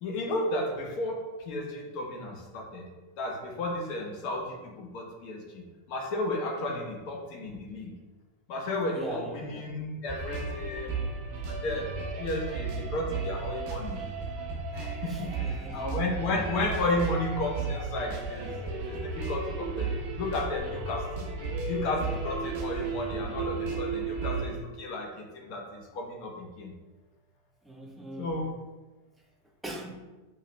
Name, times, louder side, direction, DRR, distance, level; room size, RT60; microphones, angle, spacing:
voice 1, 0.0-2.9 3.2-7.9 8.5-10.9 11.4-14.0 14.7-21.3 21.7-26.7 28.2-28.5, left 2 dB, 45° left, 1 dB, 0.8 m, -33 dB
voice 2, 8.9-9.7 15.1-16.0 27.6-28.4 29.6-30.0, right 1 dB, 5° right, -1 dB, 0.6 m, -42 dB
sound 1, 10.1-24.6, right 4 dB, 50° right, 0.9 m, -34 dB
5.5 x 2.8 x 2.2 m, 1.2 s
figure-of-eight pair, 90°, 0 cm